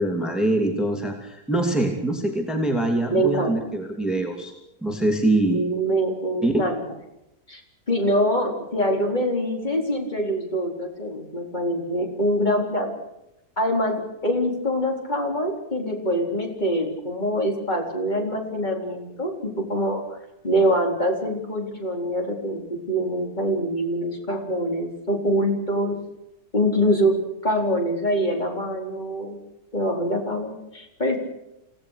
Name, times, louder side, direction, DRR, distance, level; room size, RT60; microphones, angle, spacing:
voice 1, 0.0-4.5 4.8-5.6 6.4-6.6, right 1 dB, ahead, 2 dB, 2.8 m, -23 dB
voice 2, 3.1-3.5 5.5-6.8 7.5-7.6 7.9-12.9 13.6-20.0 20.4-26.0 26.5-27.2 27.4-29.4 29.7-31.2, equal, 25° left, 1 dB, 4.3 m, -24 dB
28.0 x 18.0 x 6.6 m, 0.88 s
omnidirectional pair, 1.7 m